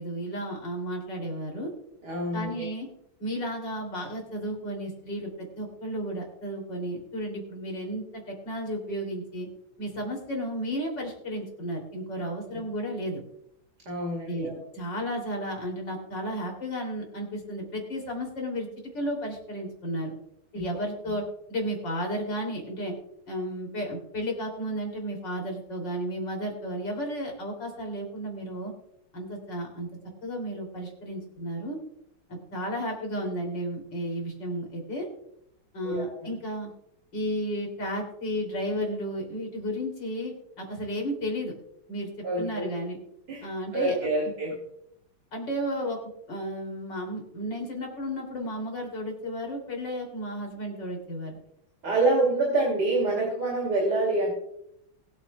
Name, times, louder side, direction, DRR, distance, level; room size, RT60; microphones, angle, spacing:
voice 1, 0.0-1.7 2.3-2.9 3.2-5.3 5.6-9.5 9.8-13.2 14.3-18.7 18.9-20.1 20.5-22.9 23.3-28.7 29.1-29.9 30.2-31.8 32.3-35.1 35.7-36.7 37.1-41.5 41.9-42.1 42.4-43.0 43.4-44.0 45.3-46.0 46.3-51.4, equal, 55° left, 1 dB, 3.7 m, -33 dB
voice 2, 2.0-2.7 13.9-14.6 20.5-20.6 35.8-36.3 42.2-42.7 43.3-43.5 43.7-44.5 51.8-54.3, right 2 dB, 50° right, -1 dB, 3.1 m, -26 dB
22.0 x 9.0 x 2.3 m, 0.76 s
omnidirectional pair, 2.3 m